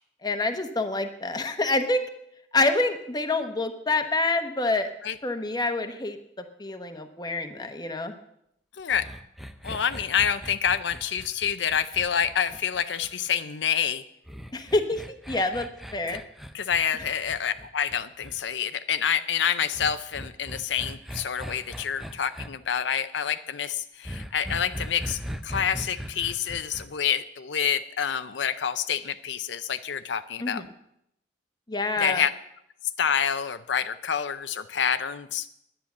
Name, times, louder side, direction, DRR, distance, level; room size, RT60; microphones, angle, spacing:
voice 1, 0.2-2.0 2.5-4.9 5.2-6.2 6.6-8.1 14.5-16.2 30.4-30.7 31.7-32.3, left 2 dB, 25° left, 7 dB, 1.0 m, -27 dB
voice 2, 8.8-9.1 9.6-14.0 16.1-16.2 16.5-30.6 32.0-32.3 33.0-35.5, left 8 dB, 85° left, 11 dB, 0.6 m, -27 dB
sound 1, 8.9-13.3 14.3-18.4 19.7-22.5 24.0-26.9, equal, ahead, 0.6 m, -39 dB
10.5 x 10.0 x 7.1 m, 0.78 s
head